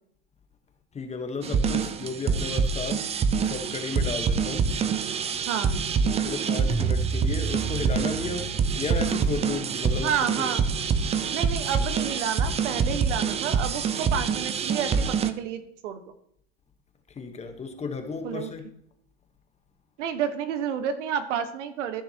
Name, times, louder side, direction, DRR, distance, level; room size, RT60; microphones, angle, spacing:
voice 1, 0.9-3.1 3.4-4.8 6.0-10.5 17.1-18.7, left 4 dB, 15° left, 1.2 m, -34 dB
sound 1, 1.4-15.3, right 6 dB, 15° right, 0.5 m, -26 dB
voice 2, 5.5-5.8 10.0-10.6 11.3-16.0 18.2-18.5 20.0-22.0, right 8 dB, 75° right, 1.4 m, -30 dB
14.0 x 6.3 x 2.9 m
hypercardioid pair, 120°, 37 cm